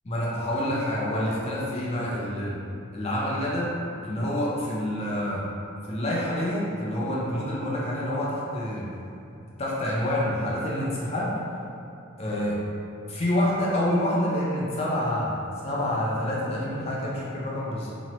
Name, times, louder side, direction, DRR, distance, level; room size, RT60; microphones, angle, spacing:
voice 1, 0.0-2.5 2.9-3.7 4.0-5.4 5.9-8.8 9.6-11.4 12.2-12.6 13.1-17.9, left 1 dB, 30° left, -6 dB, 0.4 m, -27 dB
2.8 x 2.1 x 2.9 m, 2.6 s
head